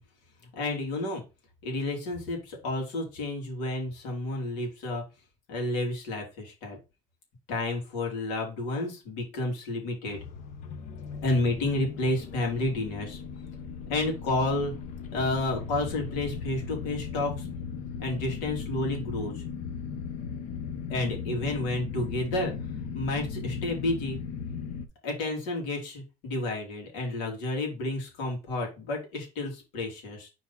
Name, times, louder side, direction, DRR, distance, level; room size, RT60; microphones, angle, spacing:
voice 1, 0.5-1.2 1.6-5.0 5.5-6.8 7.5-10.2 11.2-13.2 13.9-14.7 15.1-17.5 18.0-19.4 20.9-22.5 22.9-24.2 25.0-30.3, left 2 dB, 90° left, 0 dB, 3.1 m, -30 dB
sound 1, 10.0-24.9, left 6 dB, 55° left, 0.8 m, -37 dB
4.6 x 4.2 x 5.6 m, 0.29 s
cardioid pair, 150°, 15 cm